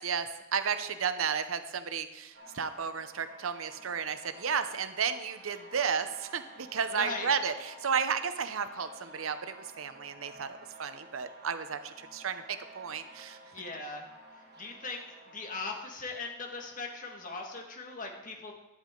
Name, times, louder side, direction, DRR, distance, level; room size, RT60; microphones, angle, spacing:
voice 1, 0.0-10.5 10.8-12.4 12.7-13.4, right 6 dB, 85° right, 10 dB, 0.7 m, -33 dB
sound 1, 2.3-15.9, right 1 dB, 55° right, 1.5 m, -52 dB
voice 2, 6.9-7.3 13.5-14.1 14.6-18.5, left 3 dB, 40° left, 1 dB, 1.7 m, -39 dB
11.5 x 10.0 x 3.8 m, 1.0 s
head